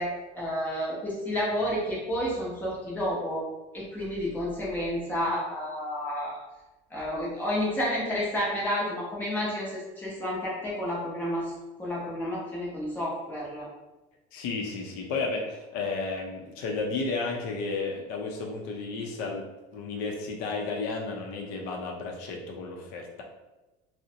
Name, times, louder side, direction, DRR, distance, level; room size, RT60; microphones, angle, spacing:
voice 1, 0.0-3.4 3.7-6.4 6.9-11.5 11.8-13.7, equal, 10° left, -6 dB, 0.7 m, -30 dB
voice 2, 14.3-19.5 19.7-23.2, left 3 dB, 60° left, 1 dB, 0.5 m, -33 dB
2.5 x 2.0 x 2.7 m, 1.1 s
cardioid pair, 175°, 17 cm